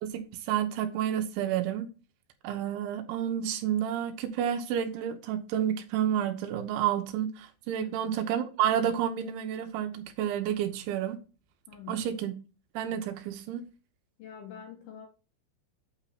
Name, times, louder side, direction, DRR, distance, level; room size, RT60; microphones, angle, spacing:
voice 1, 0.0-1.9 2.4-11.2 11.9-12.3 12.7-13.6, right 10 dB, 75° right, 3.1 m, -30 dB
voice 2, 7.8-8.2 11.7-12.1 14.2-15.1, left 8 dB, 70° left, 2.5 m, -45 dB
9.0 x 3.6 x 5.8 m
omnidirectional pair, 5.8 m